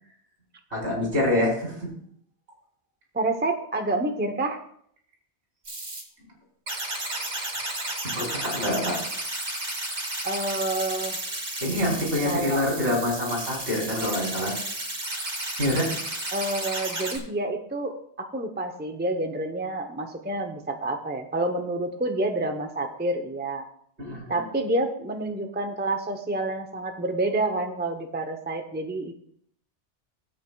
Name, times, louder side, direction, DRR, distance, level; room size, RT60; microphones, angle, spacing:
voice 1, 0.7-1.9 8.0-9.0 11.6-14.5 15.6-16.0 24.0-24.4, left 1 dB, 70° right, -3 dB, 3.8 m, -26 dB
voice 2, 3.1-4.6 10.2-11.2 12.2-12.6 16.3-23.7 24.3-29.1, right 2 dB, 10° right, 5 dB, 0.7 m, -28 dB
sound 1, 5.6-6.0 6.7-17.2, right 1 dB, 90° right, 3.0 m, -33 dB
16.5 x 8.2 x 2.3 m, 0.65 s
omnidirectional pair, 1.1 m